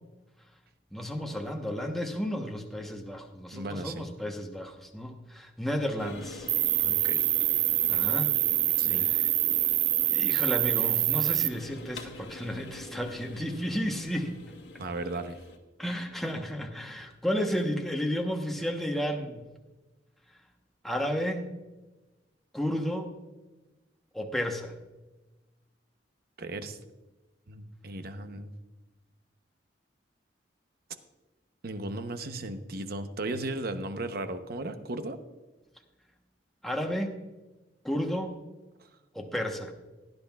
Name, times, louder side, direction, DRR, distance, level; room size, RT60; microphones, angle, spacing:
voice 1, 0.9-6.5 7.9-8.3 9.1-9.2 10.1-14.4 15.8-19.5 20.8-21.5 22.5-23.1 24.1-24.7 36.6-37.2 37.8-38.4 39.1-39.7, equal, ahead, 1 dB, 1.0 m, -32 dB
voice 2, 3.5-4.0 6.8-7.3 7.5-7.6 8.8-9.1 14.8-15.4 26.4-26.8 27.5-28.5 31.6-35.2 38.8-38.9, right 2 dB, 60° right, 9 dB, 0.8 m, -36 dB
sound 1, 6.0-15.6, left 2 dB, 85° left, 1.6 m, -44 dB
Cricket, 6.5-11.5, right 14 dB, 90° right, 0.5 m, -25 dB
17.0 x 10.5 x 2.4 m, 1.1 s
head